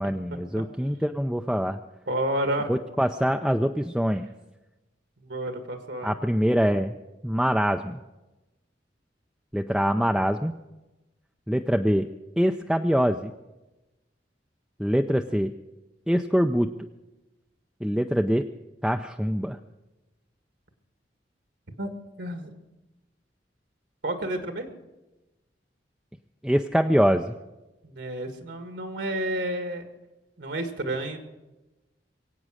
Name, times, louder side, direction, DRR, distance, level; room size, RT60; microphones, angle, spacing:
voice 1, 0.0-1.8 2.7-4.3 6.0-6.9 7.2-8.0 9.5-10.5 11.5-12.1 12.4-13.3 14.8-15.5 16.1-16.7 17.8-18.5 18.8-19.6 26.4-27.4, equal, ahead, 4 dB, 0.4 m, -24 dB
voice 2, 2.1-2.7 5.3-6.1 21.8-21.9 22.2-22.5 24.0-24.7 27.8-29.9 30.4-31.2, right 1 dB, 75° right, 6 dB, 1.7 m, -30 dB
23.0 x 8.6 x 6.3 m, 1.0 s
head